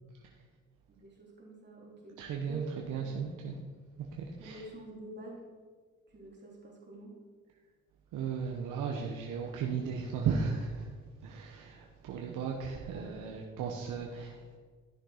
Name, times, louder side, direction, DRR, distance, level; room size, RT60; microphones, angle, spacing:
voice 1, 0.9-3.2 4.4-5.4 6.1-7.1 12.9-13.5, right 2 dB, 35° right, -3 dB, 3.3 m, -48 dB
voice 2, 2.2-3.6 4.0-4.6 8.1-14.6, right 6 dB, 85° right, 1 dB, 1.0 m, -36 dB
12.0 x 6.5 x 5.0 m, 1.5 s
cardioid pair, 90°, 30 cm